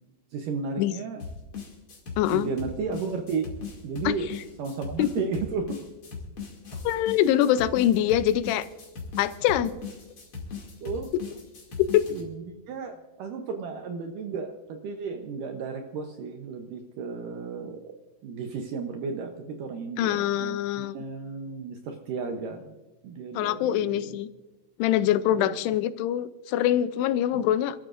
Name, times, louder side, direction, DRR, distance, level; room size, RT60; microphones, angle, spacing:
voice 1, 0.3-1.3 2.3-3.5 3.8-4.3 4.6-5.8 6.7-6.8 9.6-9.7 10.8-11.1 12.1-18.0 18.2-22.8 23.0-24.2 25.3-25.6 27.3-27.5, right 5 dB, 75° right, 4 dB, 2.0 m, -34 dB
sound 1, 1.2-12.2, left 5 dB, 35° left, 2.8 m, -38 dB
voice 2, 2.2-2.5 4.1-4.2 5.0-5.1 6.8-8.7 9.2-9.7 11.8-12.1 20.0-21.0 23.4-24.3 24.8-27.8, left 12 dB, 85° left, 14 dB, 2.7 m, -24 dB
27.5 x 13.0 x 2.6 m, 1.1 s
omnidirectional pair, 4.8 m